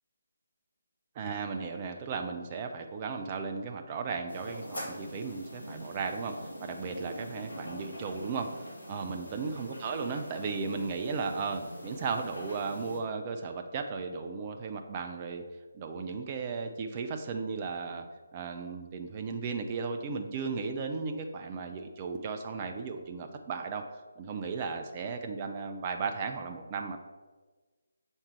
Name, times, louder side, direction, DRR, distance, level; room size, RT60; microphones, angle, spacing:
voice 1, 1.2-15.4 15.7-18.0 18.3-27.0, right 5 dB, 25° right, 4 dB, 0.4 m, -35 dB
sound 1, 4.3-13.0, equal, 65° left, 1.5 m, -43 dB
7.0 x 3.3 x 4.4 m, 1.3 s
figure-of-eight pair, 145°, 0 cm